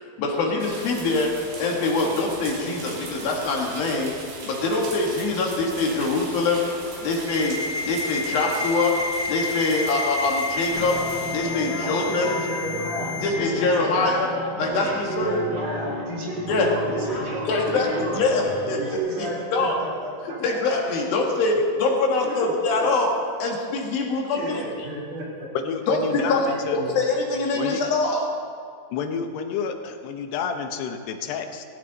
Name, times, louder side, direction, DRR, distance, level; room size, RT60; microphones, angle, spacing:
voice 1, 0.2-1.3 1.6-4.1 4.4-6.7 7.0-9.0 9.3-11.0 11.3-12.3 13.2-14.3 14.6-14.9 15.2-15.4 16.5-16.7 17.5-19.7 20.4-23.1 23.4-24.6 25.9-26.4 26.7-28.3, left 3 dB, 70° left, 0 dB, 3.4 m, -24 dB
sound 1, 0.6-11.4, right 3 dB, 80° right, 4.7 m, -39 dB
Ringtone, 7.3-13.3, left 3 dB, 20° right, 5.3 m, -30 dB
sound 2, 10.7-18.9, left 1 dB, 20° left, 2.1 m, -34 dB
voice 2, 11.8-14.3 14.5-18.3 18.8-20.8 22.2-22.5 22.8-22.9 23.3-23.4 24.3-25.5 26.1-27.0, right 2 dB, 60° right, -6 dB, 5.6 m, -32 dB
voice 3, 25.5-26.8 27.5-27.8 28.9-31.6, left 6 dB, 90° left, 6 dB, 3.1 m, -29 dB
19.0 x 15.5 x 4.1 m, 2.3 s
omnidirectional pair, 4.6 m